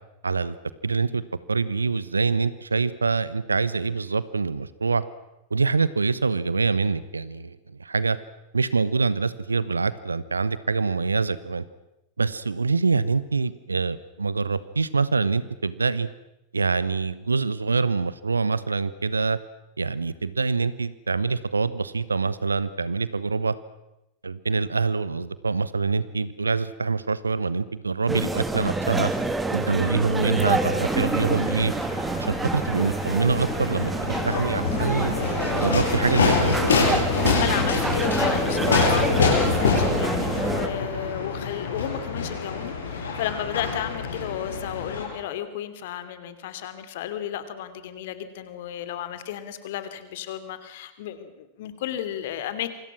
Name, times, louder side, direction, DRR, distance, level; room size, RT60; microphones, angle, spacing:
voice 1, 0.2-0.5 0.8-1.2 1.5-5.0 5.5-8.2 8.5-11.6 12.2-16.1 16.5-19.4 19.8-23.5 24.2-29.1 29.5-31.7 32.1-33.9 34.2-35.2 35.6-36.6, right 4 dB, 75° right, 17 dB, 1.2 m, -25 dB
sound 1, 28.1-40.7, right 2 dB, 10° right, 2.6 m, -27 dB
sound 2, 30.4-45.0, left 4 dB, 70° left, 7.3 m, -26 dB
voice 2, 37.1-52.7, left 11 dB, 55° left, 11 dB, 2.9 m, -33 dB
27.5 x 25.5 x 6.1 m, 0.92 s
figure-of-eight pair, 90°, 0 cm